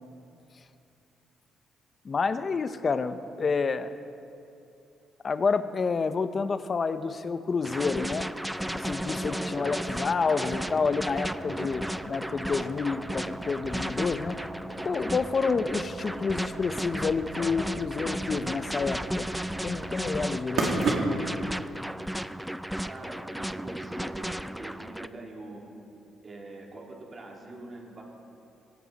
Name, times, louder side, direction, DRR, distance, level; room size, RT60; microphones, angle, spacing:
voice 1, 2.0-3.9 5.2-8.3 8.7-14.4 14.8-19.3 19.6-20.7, left 4 dB, 40° left, 11 dB, 0.7 m, -29 dB
sound 1, 7.6-25.1, equal, 5° right, 0.4 m, -34 dB
sound 2, 8.6-21.4, right 3 dB, 70° right, 2.5 m, -37 dB
voice 2, 22.8-24.3 24.6-25.6 26.2-28.0, right 2 dB, 35° right, -1 dB, 3.0 m, -43 dB
17.0 x 16.5 x 4.1 m, 2.7 s
cardioid pair, 90°, 0 cm